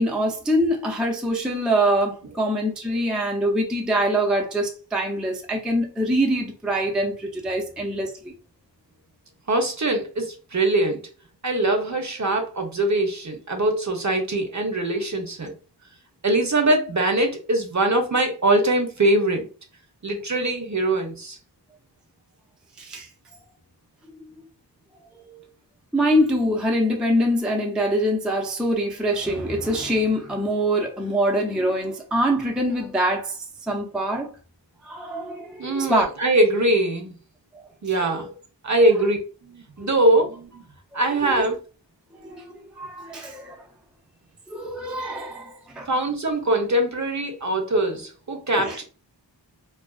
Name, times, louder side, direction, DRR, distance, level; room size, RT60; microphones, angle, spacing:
voice 1, 0.0-8.3 22.8-23.1 24.2-24.3 25.2-25.4 25.9-34.3 34.8-36.1 38.0-38.3 40.9-41.4 42.2-43.7 44.5-45.9 48.6-48.8, equal, ahead, 0.4 m, -24 dB
voice 2, 9.5-11.0 11.4-15.5 16.2-19.5 20.0-21.4 35.6-37.1 37.8-38.3 38.6-40.6 40.9-41.6 45.9-48.8, right 1 dB, 40° right, 0.7 m, -22 dB
2.4 x 2.3 x 2.3 m
wide cardioid pair, 40°, 43 cm